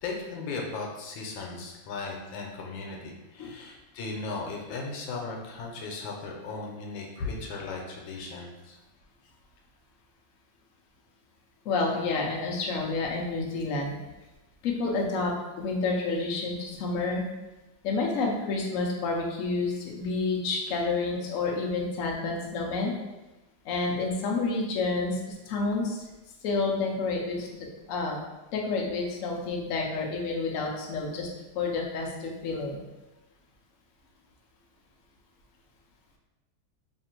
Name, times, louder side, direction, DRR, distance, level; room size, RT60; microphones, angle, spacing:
voice 1, 0.0-8.8, left 3 dB, 85° left, 0 dB, 1.4 m, -37 dB
voice 2, 11.6-13.9 14.6-17.2 17.8-22.9 23.6-26.0 26.4-27.6 27.9-28.2 28.5-31.3 31.5-32.8, left 3 dB, 65° left, -1 dB, 0.8 m, -29 dB
3.3 x 2.4 x 4.4 m, 1.1 s
omnidirectional pair, 2.1 m